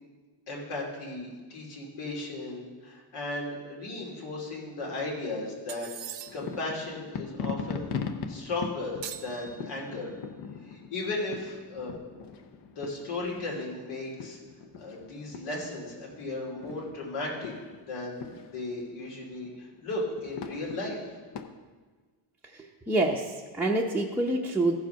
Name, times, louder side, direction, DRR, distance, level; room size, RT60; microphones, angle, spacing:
voice 1, 0.5-7.9 8.3-10.1 10.7-12.0 12.8-14.4 14.8-17.5 17.9-18.2 18.5-21.0, left 2 dB, 80° left, -2 dB, 2.8 m, -36 dB
sound 1, 5.7-6.6 9.0-10.1, right 9 dB, 60° right, 0.7 m, -42 dB
sound 2, 6.3-21.4, left 5 dB, 55° left, 0.8 m, -41 dB
voice 2, 22.4-24.7, right 2 dB, 5° right, -3 dB, 0.6 m, -27 dB
14.5 x 4.8 x 5.7 m, 1.4 s
cardioid pair, 130°, 49 cm